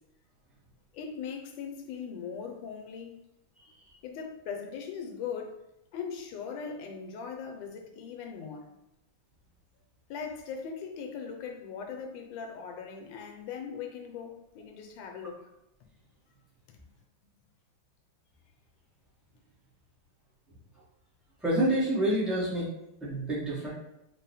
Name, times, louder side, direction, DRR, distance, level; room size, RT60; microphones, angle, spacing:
voice 1, 0.9-3.2 4.0-5.6 5.9-8.7 10.1-15.5, left 6 dB, 80° left, 1.2 m, -39 dB
voice 2, 21.4-22.7 23.0-23.7, right 1 dB, ahead, 0.3 m, -27 dB
3.7 x 2.0 x 4.1 m
omnidirectional pair, 2.1 m